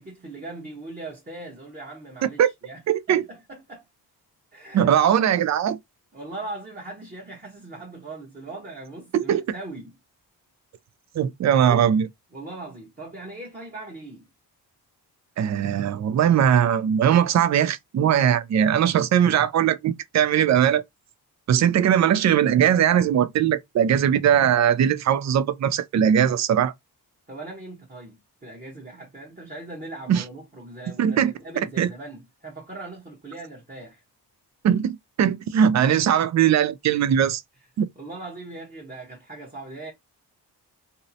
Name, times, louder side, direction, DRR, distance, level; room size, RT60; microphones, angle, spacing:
voice 1, 0.0-2.8 3.1-3.8 4.5-4.9 6.1-9.9 11.7-11.8 12.3-14.3 27.3-34.0 37.9-39.9, right 2 dB, 20° right, 0.9 m, -39 dB
voice 2, 2.9-3.2 4.7-5.8 9.1-9.4 11.2-12.1 15.4-20.8 21.5-26.7 30.1-30.2 31.0-31.3 31.8-31.9 34.6-37.4 37.8-37.9, right 9 dB, 45° right, 0.4 m, -20 dB
2.7 x 2.0 x 2.6 m
cardioid pair, 75°, 40 cm